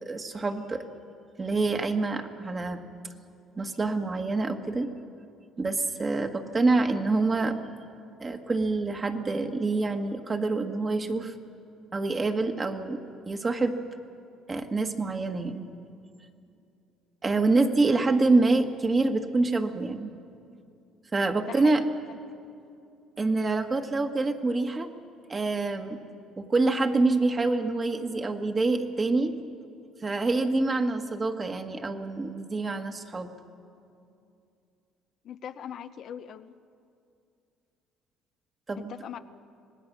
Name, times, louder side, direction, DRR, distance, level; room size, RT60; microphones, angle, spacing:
voice 1, 0.0-0.8 1.4-2.8 3.6-4.9 5.6-7.6 8.2-11.3 11.9-13.0 13.2-13.8 14.5-15.6 17.2-20.1 21.1-21.8 23.2-24.9 25.3-26.0 26.4-29.3 30.0-33.3 38.7-38.9, right 3 dB, 30° right, 6 dB, 1.7 m, -26 dB
voice 2, 21.4-21.8 22.1-22.2 35.2-36.5 38.8-39.2, left 9 dB, 60° left, 10 dB, 0.7 m, -40 dB
26.0 x 19.0 x 6.2 m, 2.5 s
supercardioid pair, 85°, 0 cm